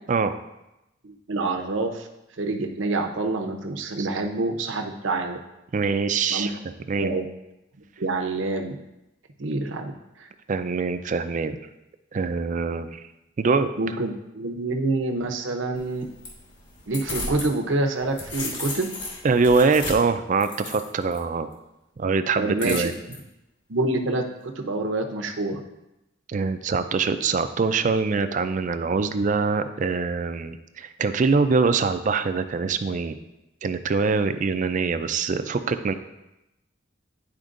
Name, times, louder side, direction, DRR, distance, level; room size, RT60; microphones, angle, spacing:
voice 1, 1.0-2.1 2.4-5.4 6.3-6.5 7.0-7.3 8.0-8.8 9.4-9.9 10.2-10.3 13.8-16.1 16.9-18.9 22.4-22.9 23.7-25.6, right 2 dB, 70° right, 4 dB, 0.7 m, -27 dB
voice 2, 5.7-6.5 6.9-7.1 10.5-11.6 12.1-13.0 13.4-13.7 19.2-21.5 22.0-22.9 26.3-33.2 33.6-35.9, right 4 dB, 40° right, 10 dB, 0.4 m, -23 dB
sound 1, 15.7-17.5 17.9-21.2 22.6-23.2, left 2 dB, 60° left, 1.8 m, -35 dB
10.5 x 4.4 x 2.5 m, 0.92 s
head